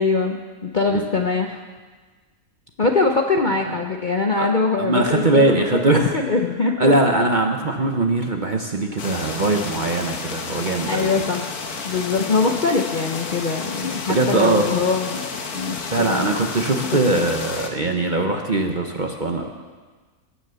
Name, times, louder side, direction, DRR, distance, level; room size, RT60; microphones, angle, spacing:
voice 1, 0.0-1.7 2.8-5.6 5.9-6.9 10.9-11.4 11.8-15.2 15.5-17.3, left 4 dB, 45° left, 3 dB, 0.7 m, -22 dB
voice 2, 4.8-6.1 6.8-11.1 14.1-14.7 15.9-19.5, right 2 dB, 40° right, 3 dB, 0.8 m, -21 dB
sound 1, 9.0-17.7, left 4 dB, 75° left, 1.6 m, -31 dB
18.5 x 6.7 x 6.9 m, 1.4 s
omnidirectional pair, 1.6 m